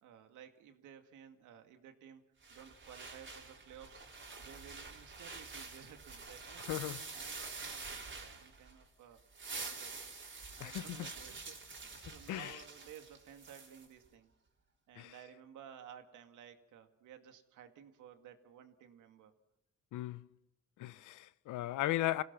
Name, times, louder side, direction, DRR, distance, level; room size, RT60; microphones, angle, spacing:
voice 1, 0.0-2.2 2.5-4.0 4.4-6.8 7.1-9.2 9.6-10.0 10.6-14.3 14.9-19.3, right 9 dB, 85° right, 2.2 m, -55 dB
sound 1, 2.4-8.8 9.2-13.9, right 4 dB, 40° right, 4.1 m, -47 dB
voice 2, 6.7-7.0 10.6-11.1 12.3-12.6 15.0-15.1 19.9-20.2 20.8-22.2, left 15 dB, 85° left, 0.8 m, -36 dB
27.0 x 17.0 x 6.0 m
cardioid pair, 90°, 30 cm